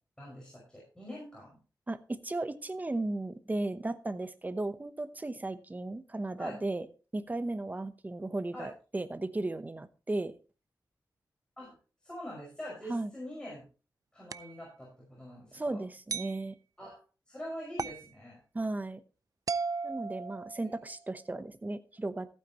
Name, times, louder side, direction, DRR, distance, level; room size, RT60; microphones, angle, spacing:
voice 1, 0.2-1.6 6.4-6.6 8.5-8.7 11.6-11.7 12.0-13.6 14.1-15.8 16.8-17.0 17.3-18.4, left 1 dB, 10° left, -4 dB, 5.4 m, -44 dB
voice 2, 1.9-6.9 7.1-10.3 12.9-13.1 15.5-16.5 18.5-19.0 19.8-22.3, right 2 dB, 20° right, 12 dB, 0.9 m, -35 dB
sound 1, 14.3-14.6 16.1-16.4 17.8-18.1 19.5-20.9, right 5 dB, 50° right, 0.4 m, -36 dB
15.0 x 9.0 x 3.0 m, 0.34 s
wide cardioid pair, 105°, 7 cm